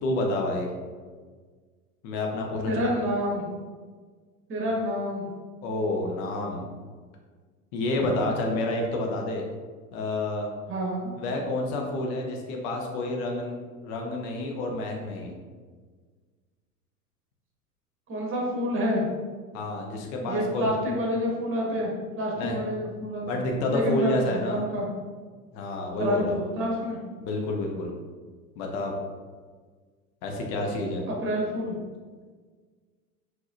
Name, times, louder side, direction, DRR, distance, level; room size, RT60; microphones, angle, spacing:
voice 1, 0.0-0.7 2.0-2.7 5.6-6.7 7.7-9.4 9.9-10.5 11.2-13.5 13.8-15.3 19.5-20.7 22.3-22.6 23.3-24.6 25.5-26.3 27.2-27.9 28.6-28.9 30.2-31.0, left 2 dB, 50° left, 1 dB, 0.9 m, -29 dB
voice 2, 2.7-3.4 4.5-5.3 10.7-11.1 18.1-19.0 20.2-24.9 26.0-27.0 31.1-31.8, equal, 25° right, -2 dB, 1.5 m, -28 dB
4.7 x 3.9 x 2.6 m, 1.5 s
figure-of-eight pair, 80°, 45 cm